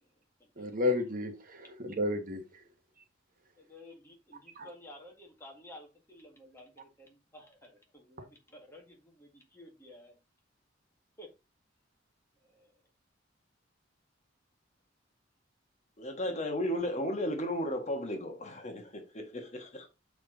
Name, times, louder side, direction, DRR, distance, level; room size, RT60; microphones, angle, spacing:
voice 1, 0.6-2.6 4.5-4.7 8.2-8.3, left 2 dB, 45° right, 1.4 m, -32 dB
voice 2, 3.6-10.2 11.2-11.3 12.5-12.7, left 1 dB, 15° left, 2.0 m, -53 dB
voice 3, 16.0-19.9, equal, 40° left, 1.4 m, -34 dB
7.0 x 4.8 x 3.9 m
head